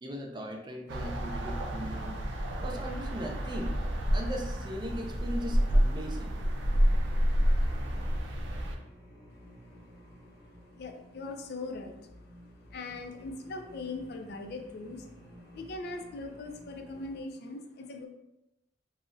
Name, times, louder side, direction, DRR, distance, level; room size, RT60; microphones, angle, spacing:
voice 1, 0.0-2.2 2.6-3.8 4.1-6.3, equal, 25° right, 2 dB, 0.4 m, -39 dB
sound 1, 0.9-8.8, equal, 90° right, 0.4 m, -29 dB
sound 2, 1.6-17.2, equal, 20° left, 0.7 m, -53 dB
voice 2, 10.4-12.2 12.6-15.1 15.5-18.1, left 3 dB, 60° left, 5 dB, 0.4 m, -41 dB
3.7 x 2.0 x 2.4 m, 0.91 s
head